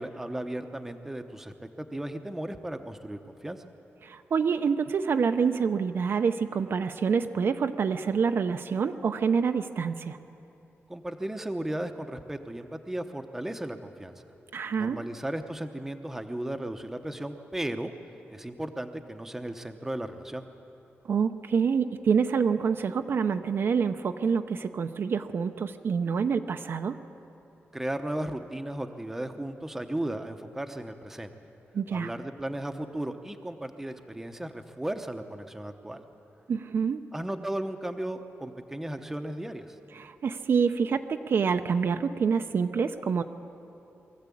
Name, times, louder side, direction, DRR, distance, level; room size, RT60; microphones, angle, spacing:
voice 1, 0.0-3.6 10.9-14.2 14.8-17.9 18.3-20.5 27.7-31.3 31.9-36.1 37.1-39.8, right 1 dB, 5° right, 6 dB, 0.9 m, -35 dB
voice 2, 4.0-10.2 14.5-15.0 21.0-27.0 31.7-32.1 36.5-37.0 40.0-43.2, right 6 dB, 55° right, 7 dB, 0.6 m, -27 dB
22.5 x 14.0 x 8.5 m, 2.9 s
wide cardioid pair, 175°, 5 cm